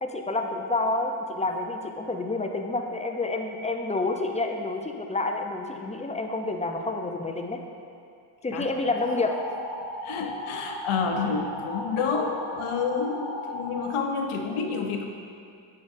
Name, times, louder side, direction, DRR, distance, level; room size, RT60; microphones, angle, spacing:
voice 1, 0.0-7.6 8.4-9.3, left 2 dB, 15° left, 3 dB, 0.5 m, -29 dB
sound 1, 8.8-13.8, left 1 dB, 55° left, 1.3 m, -36 dB
voice 2, 10.0-15.1, left 5 dB, 80° left, 3 dB, 0.8 m, -29 dB
8.4 x 5.5 x 2.6 m, 2.5 s
cardioid pair, 75°, 49 cm